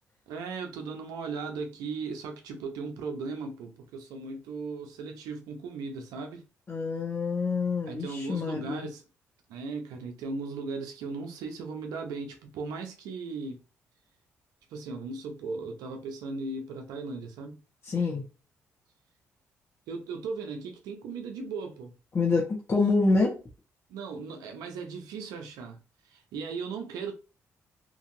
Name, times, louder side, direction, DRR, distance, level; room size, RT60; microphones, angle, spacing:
voice 1, 0.3-6.4 7.9-9.0 9.5-13.6 14.7-17.6 19.9-22.0 23.9-27.1, right 4 dB, 85° right, 0.7 m, -37 dB
voice 2, 6.7-8.9 17.8-18.2 22.1-23.4, left 3 dB, 45° left, 1.1 m, -26 dB
3.0 x 2.7 x 2.6 m
supercardioid pair, 60°, 6 cm